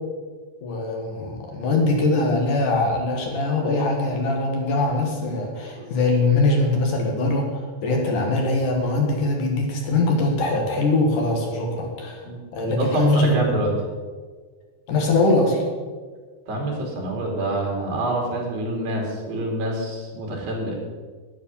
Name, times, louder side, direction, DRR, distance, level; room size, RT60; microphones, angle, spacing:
voice 1, 0.6-12.2 12.5-13.4 13.6-13.7 14.9-15.6, left 2 dB, 60° left, 1 dB, 3.1 m, -22 dB
voice 2, 12.8-13.7 16.5-20.8, right 2 dB, 65° right, 0 dB, 4.3 m, -26 dB
10.5 x 9.8 x 7.1 m, 1.5 s
omnidirectional pair, 4.5 m